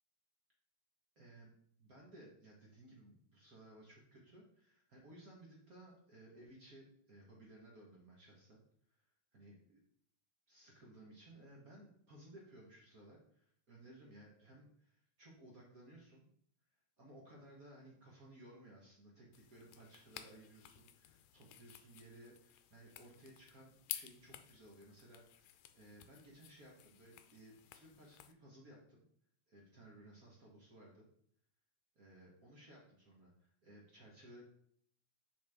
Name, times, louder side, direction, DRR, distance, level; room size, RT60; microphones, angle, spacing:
voice 1, 1.1-1.5 1.8-8.6 8.9-9.8 10.5-16.3 17.0-29.0 29.5-31.1 31.9-34.4, right 1 dB, 50° right, -3 dB, 1.0 m, -59 dB
sound 1, 19.3-28.3, left 12 dB, 80° left, 1.7 m, -53 dB
6.0 x 6.0 x 3.6 m, 0.65 s
omnidirectional pair, 3.4 m